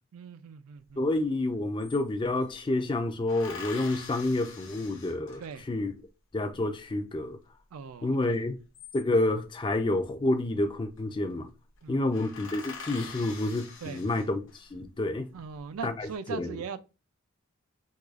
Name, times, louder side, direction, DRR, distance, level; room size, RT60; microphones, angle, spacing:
voice 1, 0.1-1.0 5.4-5.6 7.7-8.5 11.8-12.1 13.8-14.0 15.3-16.8, right 6 dB, 80° right, 0.4 m, -40 dB
voice 2, 1.0-5.4 5.7-5.9 6.3-7.4 8.0-8.6 8.9-11.5 11.9-15.3 15.8-16.6, left 2 dB, 20° left, 0.4 m, -29 dB
sound 1, 1.2-1.3 1.5-2.5 3.3-5.8 8.5-9.4 10.6-11.0 11.3-11.4 11.8-11.9 12.1-14.7 15.2-15.9, left 5 dB, 60° left, 0.8 m, -45 dB
4.7 x 2.3 x 2.4 m
head